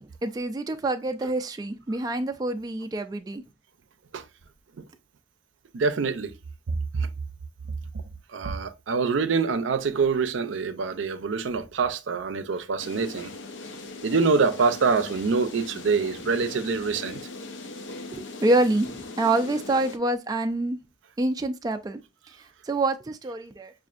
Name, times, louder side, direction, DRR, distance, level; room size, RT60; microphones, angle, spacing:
voice 1, 0.0-3.4 18.1-20.8 21.2-22.0 22.6-23.7, right 2 dB, 20° right, 0.3 m, -26 dB
voice 2, 5.7-6.3 6.7-7.1 8.3-13.3 14.0-17.2, right 4 dB, 90° right, 0.5 m, -25 dB
sound 1, 12.8-20.0, left 3 dB, 80° left, 0.6 m, -40 dB
6.0 x 2.5 x 2.4 m
head